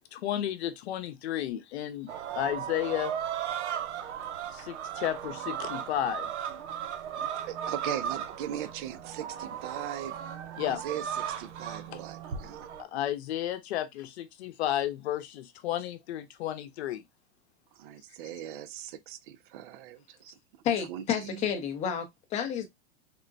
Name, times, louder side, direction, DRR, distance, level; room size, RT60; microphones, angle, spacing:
voice 1, 0.1-2.1 2.4-3.1 4.5-6.3 10.6-10.8 11.9-12.0 12.8-17.0, left 12 dB, 70° left, 0.8 m, -32 dB
sound 1, 2.1-12.8, right 9 dB, 85° right, 0.7 m, -36 dB
voice 2, 7.2-10.2 10.7-12.7 17.7-20.4 20.9-21.5, right 10 dB, 50° right, 0.5 m, -39 dB
voice 3, 20.6-22.7, left 8 dB, 20° left, 0.6 m, -30 dB
3.7 x 2.1 x 2.5 m
supercardioid pair, 145°, 34 cm